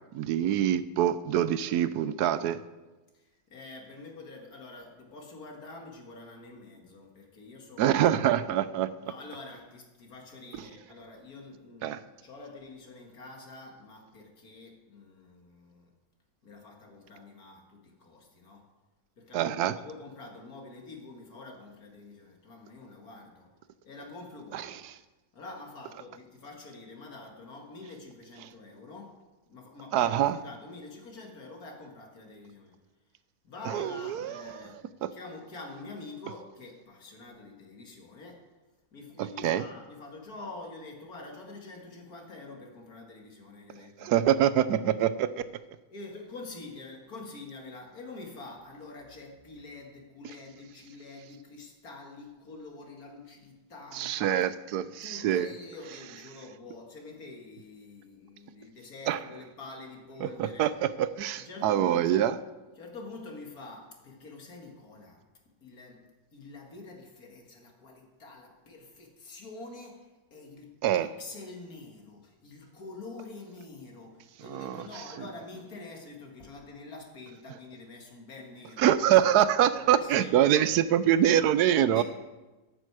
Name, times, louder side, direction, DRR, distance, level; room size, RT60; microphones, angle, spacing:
voice 1, 0.1-2.6 7.8-8.9 11.8-12.0 19.3-19.7 24.5-24.8 29.9-30.3 33.7-34.5 35.0-35.1 39.2-39.6 44.0-45.4 53.9-55.5 59.1-59.2 60.2-62.3 70.8-71.1 74.5-74.8 78.8-82.0, right 11 dB, 85° right, 14 dB, 1.2 m, -25 dB
voice 2, 3.1-8.0 9.0-15.9 16.4-18.7 19.2-23.5 23.8-24.8 25.3-32.8 33.4-38.5 38.9-44.1 45.9-54.3 54.8-60.7 61.4-62.3 62.8-65.2 65.6-66.1 66.3-79.2 79.7-80.4 81.8-82.0, left 3 dB, 70° left, 1 dB, 2.4 m, -46 dB
13.5 x 8.8 x 4.8 m, 1.1 s
omnidirectional pair, 1.6 m